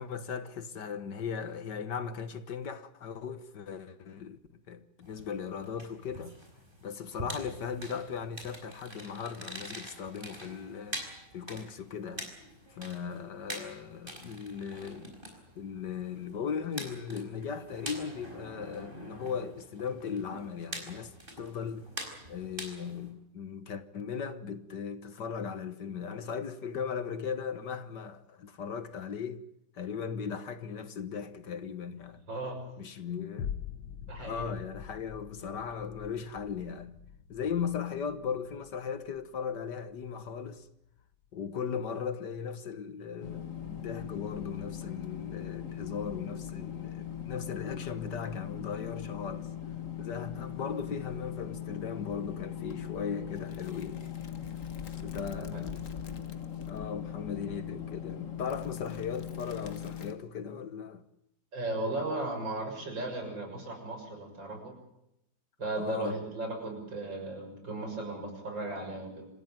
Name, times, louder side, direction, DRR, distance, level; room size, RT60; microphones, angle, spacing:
voice 1, 0.0-4.4 4.7-6.4 6.8-12.3 12.7-15.2 15.6-21.9 22.3-29.4 29.7-32.2 32.8-33.5 34.2-37.0 37.3-40.7 41.3-49.5 50.0-54.0 55.0-55.9 56.7-61.1 65.8-66.2, left 6 dB, 60° left, 1.8 m, -38 dB
sound 1, 5.0-23.1, right 1 dB, 25° right, 5.0 m, -45 dB
voice 2, 32.3-32.6 34.1-34.5 55.3-55.6 61.5-64.8 65.6-69.3, right 2 dB, 65° right, 7.4 m, -36 dB
sound 2, 33.4-41.9 42.4-42.5, left 8 dB, 80° left, 1.9 m, -45 dB
sound 3, 43.2-60.1, left 9 dB, 45° left, 1.8 m, -40 dB
27.0 x 15.5 x 9.2 m
omnidirectional pair, 2.1 m